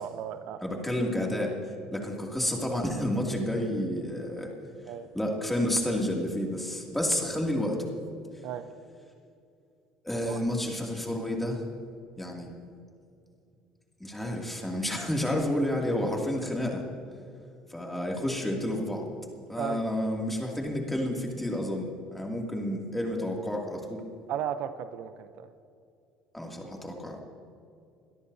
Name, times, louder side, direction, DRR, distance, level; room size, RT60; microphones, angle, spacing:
voice 1, 0.0-0.6 1.9-2.0 4.9-5.1 8.4-8.7 10.2-10.4 19.6-19.8 24.3-25.5, right 9 dB, 65° right, 11 dB, 0.6 m, -35 dB
voice 2, 0.6-1.6 1.9-4.5 5.1-7.9 10.0-11.6 12.2-12.5 14.0-16.8 17.7-19.0 19.5-24.0 26.3-27.2, left 1 dB, 5° left, -1 dB, 2.5 m, -30 dB
22.5 x 13.0 x 2.8 m, 2.4 s
supercardioid pair, 105°, 3 cm